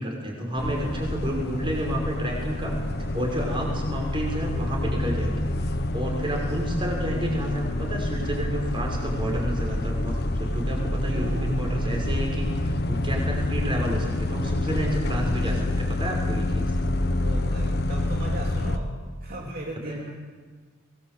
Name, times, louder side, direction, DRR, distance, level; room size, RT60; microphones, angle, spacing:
voice 1, 0.0-2.7 3.0-16.7 19.9-20.0, equal, 25° right, 0 dB, 5.8 m, -30 dB
sound 1, 0.6-18.8, left 1 dB, 55° left, 1.3 m, -27 dB
Bowed string instrument, 2.4-6.4, right 2 dB, 75° right, 7.0 m, -49 dB
voice 2, 11.1-11.6 17.2-20.1, equal, 50° right, -1 dB, 2.8 m, -36 dB
23.5 x 19.0 x 8.3 m, 1.5 s
head